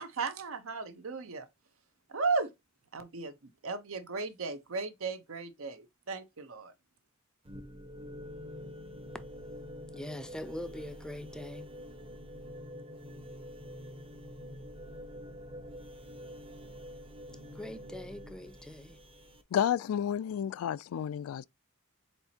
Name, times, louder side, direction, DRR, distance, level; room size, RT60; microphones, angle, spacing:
voice 1, 0.0-1.5 2.1-2.5 2.9-6.7, right 4 dB, 75° right, 0.8 m, -35 dB
sound 1, 7.4-19.4, equal, 25° right, 0.7 m, -46 dB
voice 2, 9.9-11.7 17.5-19.0, left 1 dB, 5° left, 0.4 m, -42 dB
voice 3, 19.5-21.4, left 9 dB, 90° left, 0.3 m, -31 dB
4.4 x 4.2 x 2.8 m
head